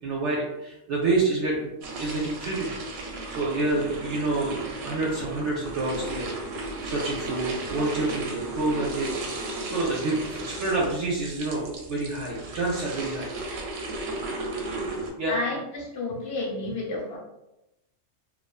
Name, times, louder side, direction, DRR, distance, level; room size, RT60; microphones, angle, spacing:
voice 1, 0.0-1.7 2.0-2.7 3.3-6.3 6.8-9.1 9.6-13.3 15.2-15.4, right 2 dB, 65° right, -4 dB, 0.8 m, -28 dB
sound 1, 1.8-15.1, right 2 dB, 90° right, 1.0 m, -35 dB
voice 2, 15.3-17.2, left 2 dB, 60° left, -1 dB, 0.7 m, -31 dB
2.5 x 2.3 x 2.2 m, 0.92 s
omnidirectional pair, 1.4 m